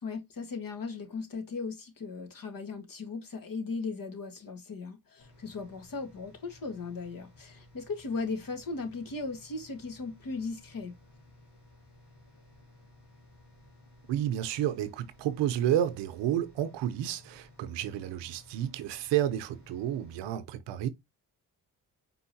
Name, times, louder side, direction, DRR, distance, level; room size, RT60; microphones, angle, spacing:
voice 1, 0.0-10.9, left 4 dB, 55° left, 1.7 m, -37 dB
sound 1, 5.2-20.3, left 1 dB, 80° left, 2.2 m, -57 dB
voice 2, 14.1-20.9, right 11 dB, 85° right, 0.7 m, -31 dB
4.6 x 3.8 x 2.7 m
supercardioid pair, 50°, 41 cm